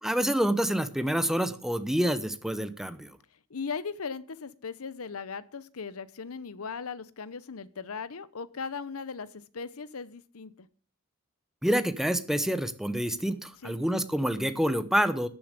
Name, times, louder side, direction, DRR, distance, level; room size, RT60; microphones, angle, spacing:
voice 1, 0.0-3.2 11.6-15.3, equal, ahead, 11 dB, 0.9 m, -27 dB
voice 2, 3.5-10.7 13.6-13.8, left 5 dB, 80° left, 16 dB, 0.8 m, -38 dB
13.0 x 6.9 x 6.7 m, 0.42 s
head